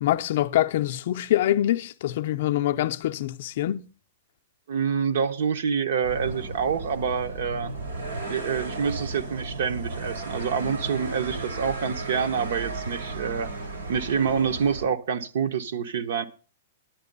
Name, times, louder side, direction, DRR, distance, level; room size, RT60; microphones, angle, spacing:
voice 1, 0.0-3.8, left 13 dB, 45° left, 0.5 m, -25 dB
voice 2, 4.7-7.7 8.3-13.5 13.9-16.3, right 7 dB, 55° right, 0.8 m, -27 dB
sound 1, 6.0-14.9, right 2 dB, 90° right, 4.4 m, -34 dB
10.5 x 9.1 x 5.3 m
supercardioid pair, 175°, 0 cm